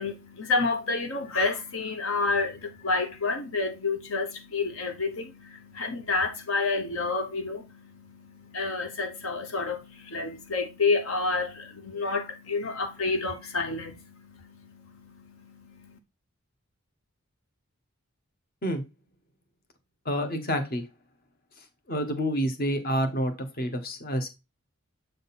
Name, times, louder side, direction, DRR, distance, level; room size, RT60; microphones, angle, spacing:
voice 1, 0.0-16.0, left 3 dB, 70° left, 1.0 m, -30 dB
voice 2, 20.0-20.8 21.9-24.3, equal, 45° left, 1.2 m, -28 dB
7.9 x 3.8 x 4.1 m
head